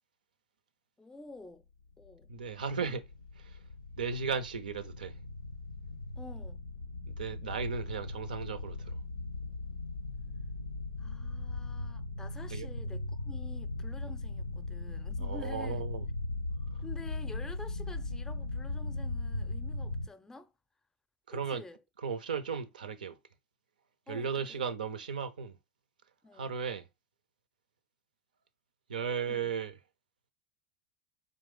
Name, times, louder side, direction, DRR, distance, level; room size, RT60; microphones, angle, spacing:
voice 1, 1.0-1.7 2.0-2.3 6.2-6.6 11.0-15.9 16.8-20.5 21.3-21.8 24.1-24.6 26.2-26.5 29.3-29.5, left 2 dB, 10° left, 0.5 m, -49 dB
sound 1, 2.0-20.1, left 2 dB, 85° left, 0.4 m, -38 dB
voice 2, 2.3-3.0 3.4-3.6 4.0-5.2 7.0-9.0 12.5-12.7 15.2-16.1 21.3-21.6 22.0-23.2 24.1-25.5 26.3-26.8 28.9-29.8, right 6 dB, 75° right, 0.5 m, -36 dB
3.8 x 3.0 x 3.8 m
figure-of-eight pair, 80°, 5 cm